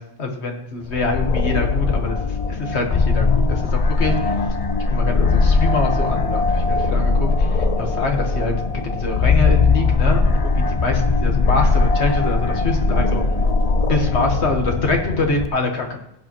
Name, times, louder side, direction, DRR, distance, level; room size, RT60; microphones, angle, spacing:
voice 1, 0.2-4.2 4.9-8.7 9.0-13.2 13.9-15.9, left 3 dB, 70° left, 3 dB, 1.8 m, -24 dB
sound 1, 0.9-15.5, left 4 dB, 40° left, 0.6 m, -19 dB
sound 2, 1.6-13.7, left 1 dB, 80° right, 2.3 m, -40 dB
15.5 x 8.8 x 3.1 m, 0.83 s
omnidirectional pair, 1.2 m